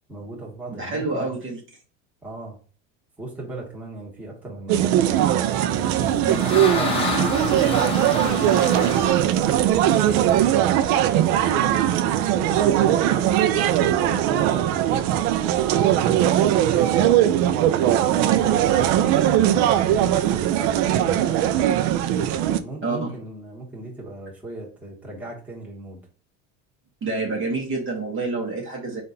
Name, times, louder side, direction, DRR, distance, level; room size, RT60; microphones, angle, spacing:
voice 1, 0.1-1.3 2.2-2.6 3.2-5.1 5.6-9.1 9.7-11.9 12.3-15.3 15.7-17.4 17.8-21.5 22.2-26.0, right 2 dB, 5° right, -4 dB, 1.3 m, -38 dB
voice 2, 0.8-1.6 6.2-6.5 22.8-23.1 27.0-29.0, right 3 dB, 30° right, -1 dB, 1.2 m, -28 dB
sound 1, 4.7-22.6, right 11 dB, 70° right, 0.6 m, -20 dB
sound 2, 5.8-10.5, left 3 dB, 15° left, 0.9 m, -29 dB
3.7 x 2.6 x 4.1 m, 0.39 s
supercardioid pair, 125°, 39 cm